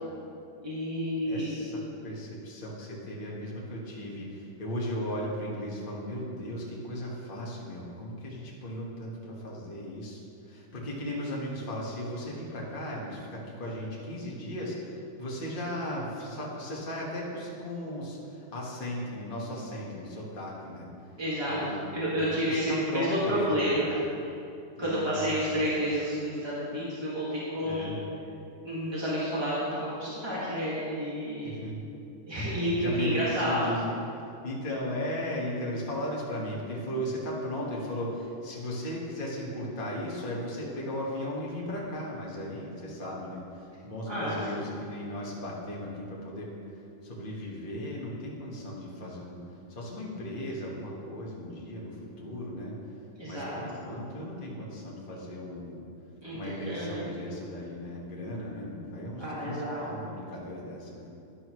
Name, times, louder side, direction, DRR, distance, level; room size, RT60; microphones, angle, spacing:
voice 1, 0.6-1.5 21.2-21.6 21.9-24.3 24.8-27.9 28.6-31.6 32.3-33.6 44.1-44.6 53.2-53.6 56.2-57.0 59.2-59.8, equal, 15° right, -9 dB, 0.9 m, -30 dB
voice 2, 1.2-20.9 21.5-23.8 24.8-25.7 27.6-27.9 31.4-31.8 32.8-34.0 34.4-46.5 47.0-49.4 49.7-52.7 53.2-55.9 56.3-61.1, equal, 75° left, -4 dB, 0.4 m, -36 dB
12.0 x 11.0 x 3.1 m, 2.7 s
omnidirectional pair, 3.7 m